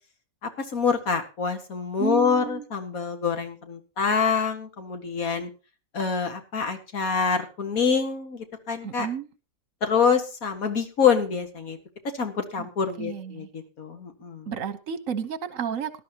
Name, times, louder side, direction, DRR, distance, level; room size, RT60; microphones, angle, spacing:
voice 1, 0.4-5.5 5.9-9.1 9.8-11.8 12.2-14.5, left 6 dB, 90° left, 6 dB, 2.3 m, -26 dB
voice 2, 2.0-2.6 8.8-9.3 12.6-12.7 13.0-13.5 14.5-16.0, right 8 dB, 70° right, 13 dB, 1.5 m, -31 dB
18.5 x 11.5 x 2.9 m, 0.31 s
omnidirectional pair, 1.4 m